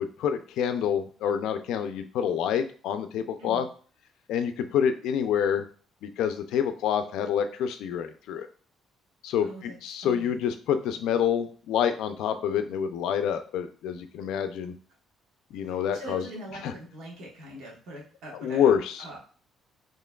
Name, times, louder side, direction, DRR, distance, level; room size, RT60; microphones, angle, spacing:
voice 1, 0.0-3.7 4.3-5.6 6.0-8.5 9.2-14.7 15.5-16.2 16.6-16.7 18.3-19.0, left 8 dB, 75° left, 8 dB, 0.4 m, -27 dB
voice 2, 9.4-10.4 15.7-18.7 19.0-19.2, right 1 dB, 80° right, -2 dB, 1.3 m, -43 dB
4.4 x 3.1 x 2.3 m, 0.42 s
cardioid pair, 175°, 0 cm